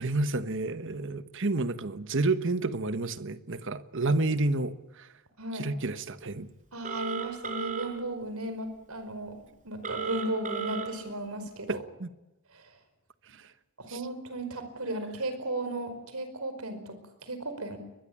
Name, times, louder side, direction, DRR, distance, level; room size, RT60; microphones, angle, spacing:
voice 1, 0.0-5.1 5.5-6.5 11.7-12.1, right 2 dB, 60° right, 1.3 m, -30 dB
voice 2, 5.4-5.7 6.7-11.8 12.5-12.7 13.8-17.8, right 1 dB, 75° right, 5.0 m, -36 dB
Telephone, 6.8-7.9 9.8-10.8, right 6 dB, 35° right, 4.9 m, -33 dB
22.5 x 21.0 x 8.8 m
head